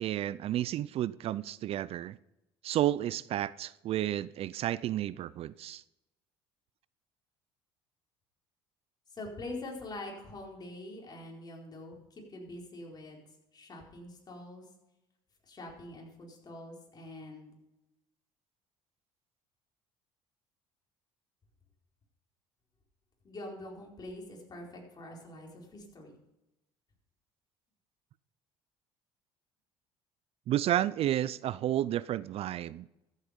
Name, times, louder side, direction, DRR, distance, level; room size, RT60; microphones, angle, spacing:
voice 1, 0.0-2.2 2.6-5.8 30.5-32.9, right 13 dB, 55° right, 0.4 m, -31 dB
voice 2, 9.1-13.2 13.5-14.6 15.5-17.5 23.2-26.2, left 2 dB, 35° left, 4.4 m, -44 dB
14.0 x 8.3 x 5.2 m
supercardioid pair, 85°, 12 cm